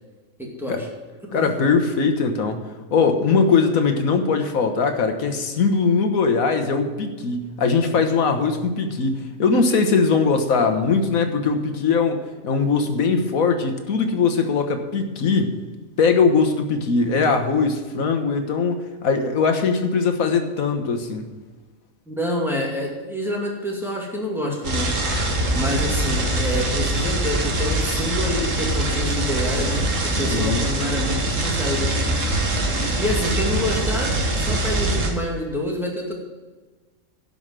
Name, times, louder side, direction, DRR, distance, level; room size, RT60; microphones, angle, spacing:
voice 1, 0.4-0.9 1.3-1.5 22.1-24.9 25.5-32.2 33.0-36.1, left 1 dB, ahead, -2 dB, 2.3 m, -27 dB
voice 2, 1.3-2.6 2.9-15.6 16.0-18.8 19.0-21.2 30.3-30.6, left 4 dB, 80° left, 6 dB, 1.6 m, -20 dB
sound 1, 24.6-35.1, right 1 dB, 65° right, 1.9 m, -23 dB
11.5 x 5.4 x 7.5 m, 1.3 s
omnidirectional pair, 1.4 m